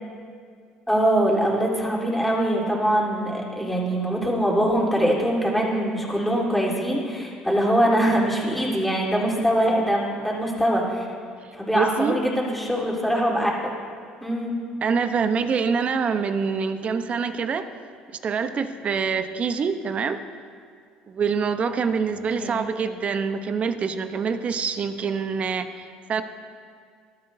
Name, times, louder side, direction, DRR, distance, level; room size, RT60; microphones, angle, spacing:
voice 1, 0.9-11.1 11.6-13.7 14.2-14.5 22.4-22.6, equal, 5° left, -4 dB, 3.9 m, -23 dB
voice 2, 11.7-12.2 14.8-17.7 18.2-20.2 21.1-26.2, right 5 dB, 40° right, 9 dB, 0.9 m, -25 dB
20.0 x 12.5 x 2.8 m, 2.2 s
hypercardioid pair, 70°, 3 cm